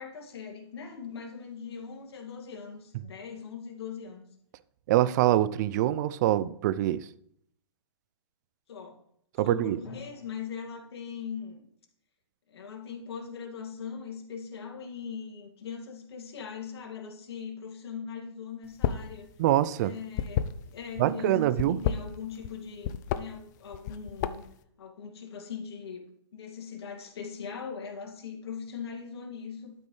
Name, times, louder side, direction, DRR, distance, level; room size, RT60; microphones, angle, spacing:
voice 1, 0.0-4.2 8.7-9.0 9.4-11.6 12.5-19.3 19.8-24.4 24.8-26.0 26.3-29.7, left 6 dB, 65° left, 2.2 m, -40 dB
voice 2, 4.9-7.1 9.4-9.8 19.4-19.9 21.0-21.8, right 13 dB, 40° right, 0.4 m, -24 dB
Drum, 9.8-11.7, left 1 dB, 25° left, 3.5 m, -53 dB
sound 1, 18.7-19.1 19.4-21.0 21.5-22.5 22.8-23.2 23.7-24.6, left 10 dB, 40° left, 0.5 m, -30 dB
12.0 x 5.3 x 3.2 m
hypercardioid pair, 135°, 14 cm